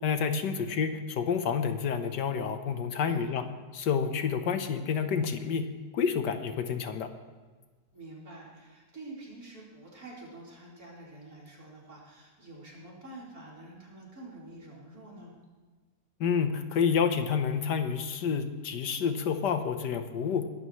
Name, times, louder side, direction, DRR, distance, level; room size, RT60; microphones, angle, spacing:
voice 1, 0.0-3.4 3.7-5.7 5.9-7.1 16.2-20.5, left 6 dB, 80° left, 8 dB, 1.6 m, -29 dB
voice 2, 7.9-15.3, right 2 dB, 55° right, -5 dB, 4.7 m, -47 dB
21.0 x 12.0 x 3.2 m, 1.4 s
omnidirectional pair, 1.8 m